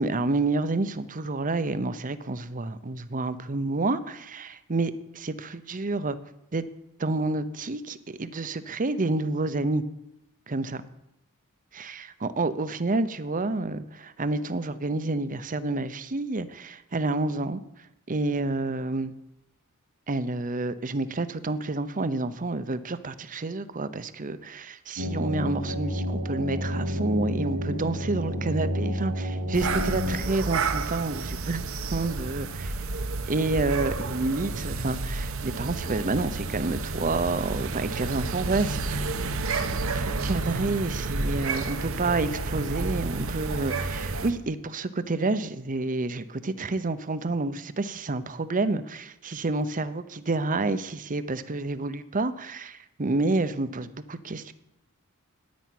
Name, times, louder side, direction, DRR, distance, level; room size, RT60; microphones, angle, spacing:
voice 1, 0.0-6.2 6.5-6.6 7.0-9.8 10.5-10.8 11.7-17.6 18.1-19.1 20.1-31.6 31.9-32.7 33.3-54.5, right 2 dB, 40° right, 0.8 m, -29 dB
sound 1, 25.0-30.2, equal, 85° right, 3.0 m, -30 dB
sound 2, 29.5-44.3, right 3 dB, 70° right, 1.0 m, -30 dB
10.5 x 9.7 x 9.2 m
head